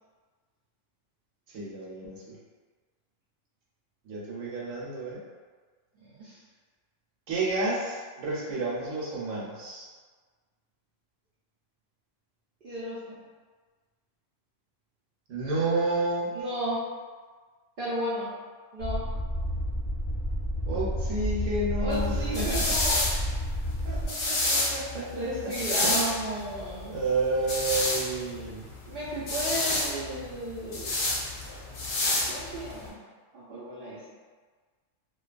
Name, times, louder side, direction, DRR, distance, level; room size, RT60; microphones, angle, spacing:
voice 1, 1.5-2.4 4.0-5.2 7.3-9.9 15.3-16.4 20.7-22.8 23.8-25.1 25.4-25.5 25.8-26.4 26.9-28.7, right 2 dB, 70° right, -5 dB, 1.0 m, -31 dB
voice 2, 5.9-6.4 12.6-13.0 16.3-16.8 17.8-18.3 18.7-19.0 21.8-23.0 25.1-26.9 28.9-31.0 32.3-33.0 33.3-34.0, equal, 55° right, -9 dB, 0.6 m, -34 dB
sound 1, 18.8-24.1, equal, 25° left, 0.9 m, -30 dB
sound 2, 21.9-32.9, left 2 dB, 65° left, 0.6 m, -30 dB
2.6 x 2.3 x 2.4 m, 1.5 s
omnidirectional pair, 1.4 m